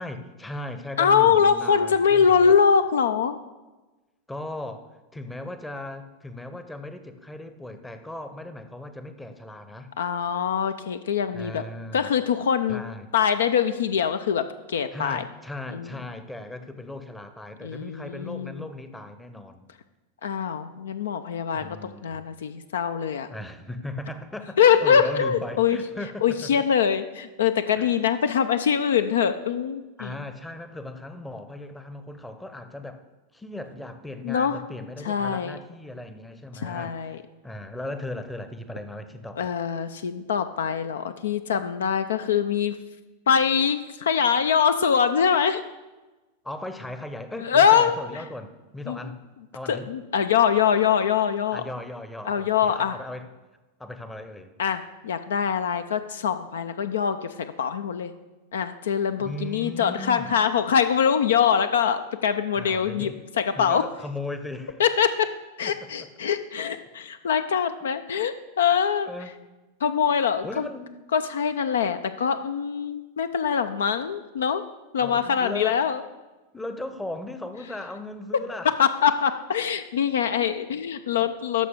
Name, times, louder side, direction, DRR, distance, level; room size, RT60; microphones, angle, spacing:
voice 1, 0.0-2.6 4.3-9.9 11.3-12.1 12.7-13.1 14.9-19.7 21.5-22.2 23.3-26.6 27.8-28.1 30.0-33.0 33.3-37.2 37.4-39.5 46.4-49.2 49.5-49.9 51.5-53.3 53.8-54.5 59.2-60.3 62.5-63.2 63.6-64.8 65.6-66.1 69.0-69.4 70.4-70.9 75.0-75.9 76.5-78.8 81.2-81.3, left 1 dB, 5° left, 9 dB, 0.7 m, -37 dB
voice 2, 1.0-3.4 10.0-11.6 11.9-12.8 13.1-15.2 15.7-15.9 17.6-18.7 20.2-23.3 24.6-25.8 26.2-30.2 34.2-34.6 35.0-35.5 36.6-37.2 39.4-42.8 43.3-45.6 47.4-48.0 48.9-49.0 49.7-51.6 52.3-53.0 54.6-58.1 58.5-63.1 63.4-63.8 64.8-65.3 65.6-69.1 69.8-70.7 71.1-74.6 74.9-76.0 78.8-81.7, left 7 dB, 65° left, 10 dB, 0.4 m, -23 dB
13.5 x 6.4 x 3.6 m, 1.1 s
figure-of-eight pair, 90°, 0 cm